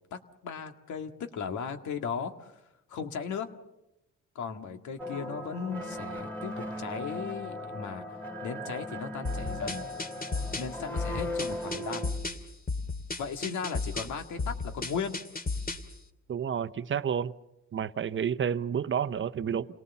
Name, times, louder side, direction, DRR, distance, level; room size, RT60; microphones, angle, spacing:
voice 1, 0.1-2.5 2.9-3.5 4.4-9.8 10.5-12.1 13.2-15.2, left 6 dB, 75° left, 2.0 m, -36 dB
sound 1, 5.0-12.1, left 1 dB, 5° left, 3.4 m, -38 dB
sound 2, 9.2-15.9, left 3 dB, 30° left, 2.3 m, -35 dB
voice 2, 16.3-17.3 17.7-19.7, right 8 dB, 40° right, 0.8 m, -30 dB
28.5 x 18.5 x 7.2 m
cardioid pair, 90°, 30 cm